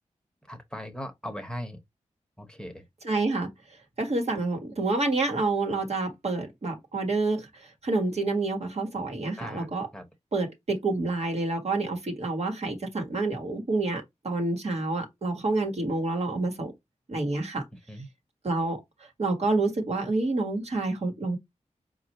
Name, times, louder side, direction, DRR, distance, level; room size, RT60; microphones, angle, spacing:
voice 1, 0.5-1.8 2.4-2.8 9.4-10.1 17.9-18.1, equal, 5° left, 0.8 m, -39 dB
voice 2, 3.0-3.5 4.0-9.9 10.3-16.7 17.1-17.6 18.4-18.8 19.2-21.4, right 3 dB, 60° right, 1.2 m, -28 dB
4.3 x 2.4 x 2.9 m
wide cardioid pair, 65°, 12 cm